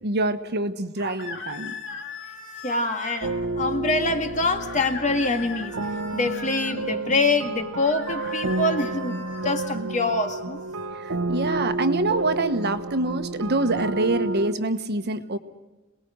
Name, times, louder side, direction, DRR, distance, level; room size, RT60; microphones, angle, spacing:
voice 1, 0.0-1.7 9.7-9.9 10.9-15.4, right 2 dB, 50° right, 9 dB, 1.3 m, -25 dB
sound 1, 1.0-3.2 4.6-6.8 7.7-9.8, left 4 dB, 60° left, 2.6 m, -38 dB
voice 2, 2.6-5.8 6.1-10.6, left 2 dB, 35° left, 6 dB, 1.9 m, -25 dB
sound 2, 3.2-14.5, right 2 dB, 80° right, 1.2 m, -30 dB
27.5 x 20.0 x 6.4 m, 1.1 s
head